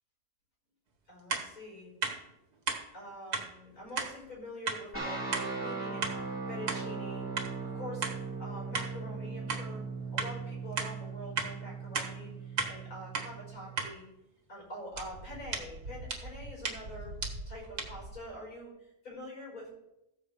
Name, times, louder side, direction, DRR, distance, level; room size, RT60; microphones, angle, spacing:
voice 1, 1.1-1.9 2.9-7.3 7.6-8.1 8.4-9.8 10.1-14.0 14.5-17.1 17.5-19.7, equal, 65° left, -3 dB, 5.8 m, -45 dB
sound 1, 1.3-1.5 2.0-2.2 2.7-2.8 3.3-3.5 4.0-4.1 4.6-4.8 5.3-5.5 6.0-6.2 6.7-6.8 7.4-7.5 8.0-8.2 8.7-8.9 9.5-9.6 10.2-10.3 10.8-10.9 11.4-11.5 11.9-12.1 12.6-12.7 13.1-13.3 13.8-13.9 14.9-18.2, right 4 dB, 75° right, 2.1 m, -35 dB
sound 2, 4.9-13.8, right 4 dB, 10° right, 2.9 m, -39 dB
14.5 x 5.0 x 7.3 m, 0.89 s
omnidirectional pair, 1.6 m